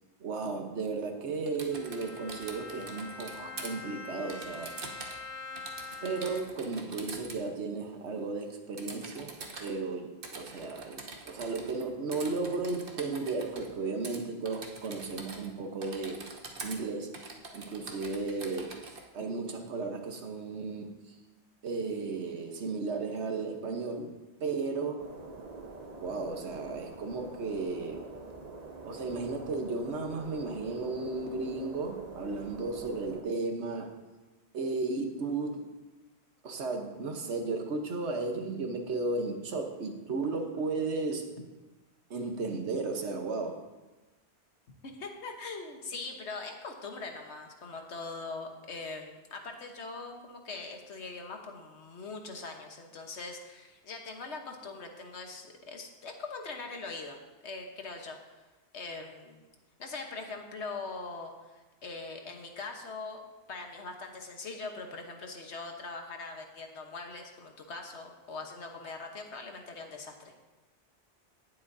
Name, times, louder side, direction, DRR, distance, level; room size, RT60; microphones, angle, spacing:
voice 1, 0.2-4.7 6.0-9.3 9.6-18.8 19.1-21.2 21.6-25.1 26.0-28.1 28.8-34.0 34.5-35.7 36.4-41.3 42.1-43.6, right 3 dB, 85° right, 4 dB, 1.4 m, -34 dB
Typing, 1.5-3.7 4.3-5.3 5.6-7.4 8.8-9.7 10.2-11.8 12.1-13.7 14.0-14.2 14.4-15.5 15.8-16.8 17.1-19.0, right 3 dB, 55° right, 1.3 m, -44 dB
Bowed string instrument, 1.7-6.7, left 4 dB, 40° left, 0.5 m, -44 dB
sound 1, 25.0-33.2, right 3 dB, 40° right, 1.0 m, -45 dB
voice 2, 44.8-57.2 57.4-58.2 58.7-59.4 59.8-70.4, left 3 dB, 80° left, 4 dB, 1.5 m, -42 dB
18.5 x 7.6 x 2.7 m, 1.2 s
omnidirectional pair, 1.1 m